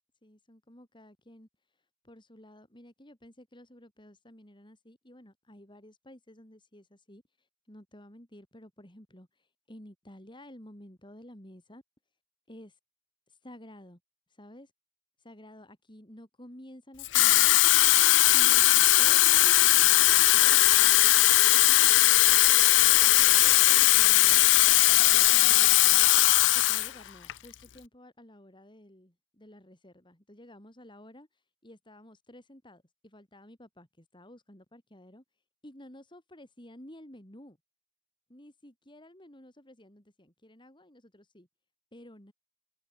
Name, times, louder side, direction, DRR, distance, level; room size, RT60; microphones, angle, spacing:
voice 1, 0.2-1.5 2.0-11.8 12.5-12.8 13.3-14.0 14.3-14.7 15.2-17.5 18.3-21.1 21.5-24.5 25.1-26.2 26.5-35.2 35.6-37.6 38.3-41.5 41.9-42.3, left 1 dB, 25° left, 5.8 m, -52 dB
Water tap faucet / Fill (with liquid), 17.0-26.9 27.3-27.5, left 17 dB, 75° left, 0.5 m, -20 dB
head